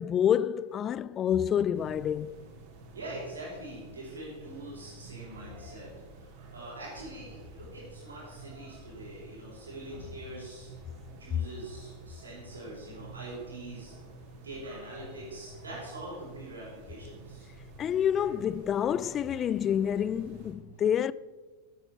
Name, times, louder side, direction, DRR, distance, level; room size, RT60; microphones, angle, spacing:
voice 1, 0.0-2.4 17.8-21.1, left 9 dB, 25° left, 0.3 m, -28 dB
sound 1, 1.7-20.5, right 2 dB, 45° right, 3.3 m, -49 dB
voice 2, 2.9-5.9 6.2-10.7 11.1-13.9 14.4-17.5, right 1 dB, 75° right, 4.8 m, -44 dB
15.5 x 9.0 x 4.7 m
figure-of-eight pair, 90°, 0 cm